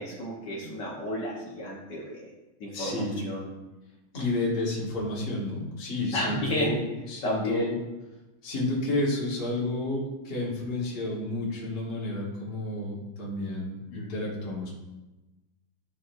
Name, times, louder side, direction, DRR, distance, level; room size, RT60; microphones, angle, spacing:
voice 1, 0.0-2.3 2.6-3.5 4.1-4.2 6.1-6.8 7.2-7.6 13.9-14.1, equal, 60° left, -4 dB, 1.6 m, -32 dB
voice 2, 2.7-3.1 4.1-7.7 8.4-14.7, left 2 dB, 30° left, -4 dB, 1.3 m, -31 dB
10.5 x 3.8 x 2.6 m, 1.1 s
omnidirectional pair, 2.4 m